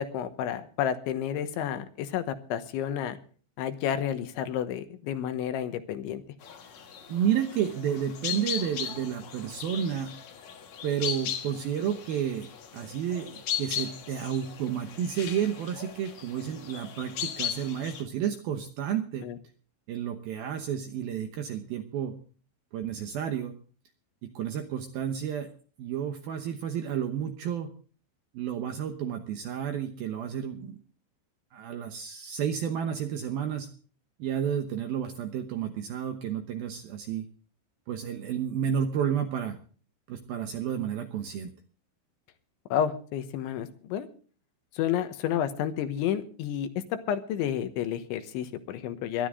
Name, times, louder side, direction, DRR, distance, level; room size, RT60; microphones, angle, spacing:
voice 1, 0.0-3.2 3.6-6.2 19.2-19.4 42.7-44.1 44.7-49.3, left 9 dB, 80° left, 9 dB, 3.4 m, -30 dB
sound 1, 6.4-18.0, left 9 dB, 60° left, 1.9 m, -37 dB
voice 2, 7.1-10.1 10.8-19.3 19.9-22.1 22.7-23.5 24.2-25.5 25.8-27.7 28.3-30.8 31.5-33.7 34.2-37.2 37.9-39.6 40.1-41.5, right 9 dB, 75° right, 6 dB, 2.3 m, -31 dB
20.0 x 12.5 x 3.8 m, 0.41 s
omnidirectional pair, 5.5 m